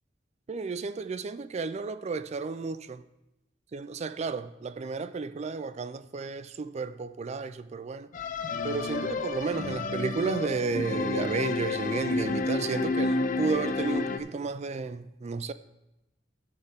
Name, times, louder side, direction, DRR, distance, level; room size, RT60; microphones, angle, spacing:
voice 1, 0.5-3.0 3.7-8.1 8.6-15.5, right 4 dB, 35° right, 0.4 m, -32 dB
sound 1, 8.1-14.2, left 3 dB, 45° left, 0.5 m, -30 dB
13.5 x 6.6 x 3.5 m
head